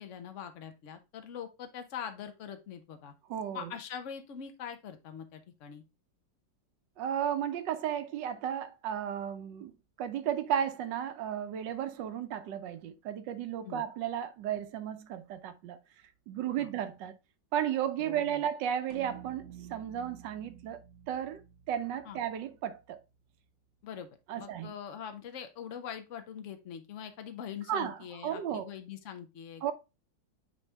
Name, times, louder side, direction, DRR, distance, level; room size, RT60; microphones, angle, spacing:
voice 1, 0.0-3.1 3.5-5.8 13.6-13.8 16.6-16.7 18.0-18.5 22.0-22.2 23.8-24.1 24.3-29.7, left 8 dB, 50° left, 1.0 m, -43 dB
voice 2, 3.3-3.7 7.0-9.7 10.0-15.8 16.3-17.1 17.5-20.8 21.1-21.4 21.7-23.0 24.3-24.7 27.7-28.7 29.6-29.7, right 9 dB, 75° right, 1.4 m, -34 dB
sound 1, 18.9-23.4, right 9 dB, 60° right, 1.1 m, -52 dB
8.8 x 3.2 x 3.3 m
omnidirectional pair, 2.0 m